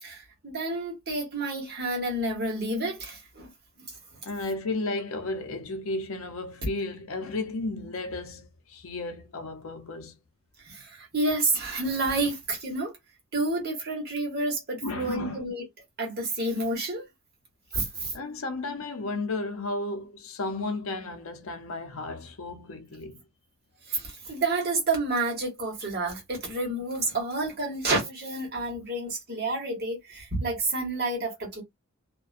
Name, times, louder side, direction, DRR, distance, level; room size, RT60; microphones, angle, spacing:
voice 1, 0.0-3.5 10.6-12.9 13.3-15.7 16.0-17.1 17.7-18.2 23.9-31.6, right 2 dB, 50° right, 1.2 m, -29 dB
voice 2, 4.2-10.2 14.8-15.4 18.1-23.2, left 2 dB, 80° left, 0.6 m, -33 dB
2.4 x 2.2 x 2.4 m
head